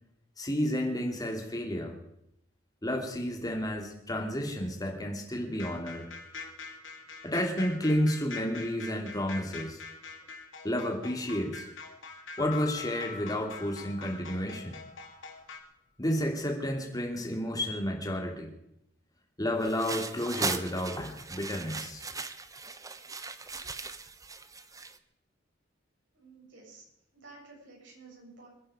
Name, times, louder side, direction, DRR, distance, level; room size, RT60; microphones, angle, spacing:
voice 1, 0.4-2.0 2.8-6.1 7.2-9.8 10.6-11.7 12.4-14.8 16.0-18.5 19.4-22.0, equal, 20° left, 2 dB, 2.9 m, -31 dB
sound 1, 5.5-15.6, left 4 dB, 80° left, 2.5 m, -44 dB
sound 2, 12.4-15.1, left 10 dB, 55° left, 3.1 m, -45 dB
sound 3, 19.6-25.0, right 4 dB, 20° right, 0.8 m, -38 dB
voice 2, 26.1-26.8 27.1-28.5, right 3 dB, 75° right, -3 dB, 7.8 m, -52 dB
26.5 x 10.5 x 5.1 m, 0.78 s
head